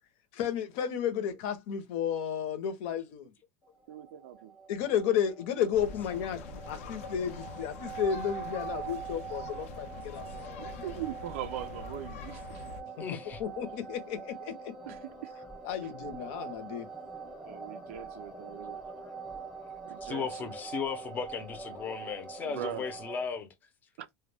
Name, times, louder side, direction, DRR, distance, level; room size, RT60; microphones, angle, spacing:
voice 1, 0.3-3.3 4.7-10.9 13.0-13.1 13.4-14.8 15.6-16.9, left 8 dB, 60° left, 0.8 m, -33 dB
sound 1, 3.7-23.3, right 5 dB, 5° right, 0.8 m, -44 dB
voice 2, 3.9-4.5 10.6-12.6 14.9-15.3 17.4-18.8 19.8-20.5 22.4-22.9 24.0-24.1, right 11 dB, 80° right, 0.4 m, -41 dB
sound 2, 5.7-12.8, left 5 dB, 90° left, 0.5 m, -45 dB
voice 3, 13.0-13.4 18.8-18.9 20.0-23.5, left 6 dB, 25° left, 0.6 m, -36 dB
2.3 x 2.2 x 3.3 m
supercardioid pair, 145°, 7 cm